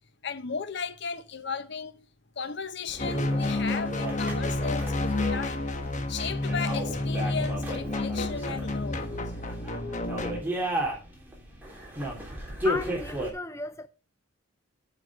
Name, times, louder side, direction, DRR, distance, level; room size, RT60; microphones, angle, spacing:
voice 1, 0.2-2.1 2.4-5.7 6.1-9.1, left 5 dB, 55° left, 0.9 m, -35 dB
sound 1, 2.9-13.3, equal, 10° right, 3.2 m, -35 dB
sound 2, 3.0-10.4, left 2 dB, 35° left, 1.2 m, -30 dB
voice 2, 12.6-13.9, left 3 dB, 15° left, 0.4 m, -34 dB
9.7 x 6.3 x 6.2 m
head